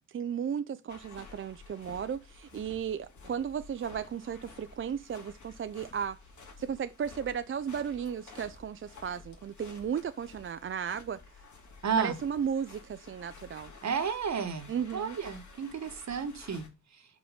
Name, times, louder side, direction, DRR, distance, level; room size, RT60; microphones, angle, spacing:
voice 1, 0.1-6.2 6.6-11.2 12.0-13.7 14.7-15.2, right 7 dB, 45° right, 0.4 m, -35 dB
sound 1, 0.9-16.7, left 4 dB, 70° left, 2.2 m, -52 dB
voice 2, 11.8-12.2 13.8-14.7 14.9-16.6, right 6 dB, 60° right, 1.2 m, -32 dB
5.1 x 4.6 x 4.9 m
cardioid pair, 85°, 31 cm